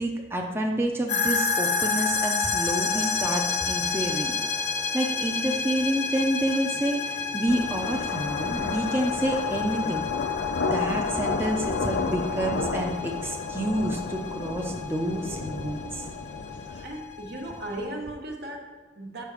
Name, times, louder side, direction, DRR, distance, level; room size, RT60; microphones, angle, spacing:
voice 1, 0.0-4.4 4.9-10.1 10.7-16.1 16.7-16.8, right 1 dB, 15° right, 1 dB, 0.6 m, -29 dB
sound 1, 1.1-17.9, left 5 dB, 45° left, 0.8 m, -30 dB
sound 2, 2.6-15.4, right 1 dB, 85° right, 1.3 m, -48 dB
sound 3, 7.5-16.9, left 3 dB, 75° left, 0.6 m, -32 dB
voice 2, 16.5-19.2, right 1 dB, 60° right, 2 dB, 1.2 m, -37 dB
6.7 x 5.6 x 4.9 m, 1.4 s
head